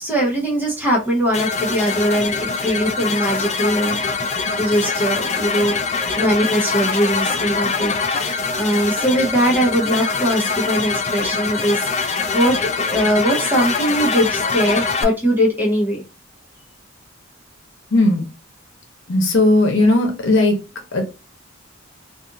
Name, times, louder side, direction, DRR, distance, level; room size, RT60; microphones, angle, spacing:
voice 1, 0.0-5.8 6.1-16.0, equal, 10° right, -3 dB, 0.7 m, -21 dB
sound 1, 1.3-15.0, left 4 dB, 35° left, 0.3 m, -23 dB
voice 2, 17.9-18.3 19.1-20.6 20.9-21.0, left 2 dB, 70° left, 3 dB, 0.8 m, -16 dB
2.5 x 2.4 x 2.6 m, 0.31 s
head